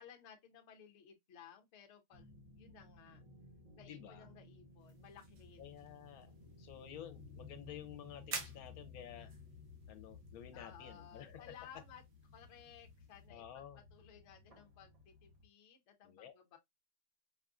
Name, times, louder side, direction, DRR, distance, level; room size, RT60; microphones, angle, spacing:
voice 1, 0.0-3.2 3.8-5.8 9.2-9.3 10.5-12.0 12.3-16.6, left 8 dB, 60° left, 1.0 m, -58 dB
sound 1, 2.1-15.4, left 4 dB, 35° right, 0.7 m, -57 dB
voice 2, 3.8-4.3 5.6-9.3 9.9-11.6 13.3-13.8 16.0-16.6, left 10 dB, 85° left, 1.1 m, -52 dB
sound 2, 4.8-13.3, right 4 dB, 90° right, 1.4 m, -53 dB
5.2 x 2.4 x 2.3 m
omnidirectional pair, 1.5 m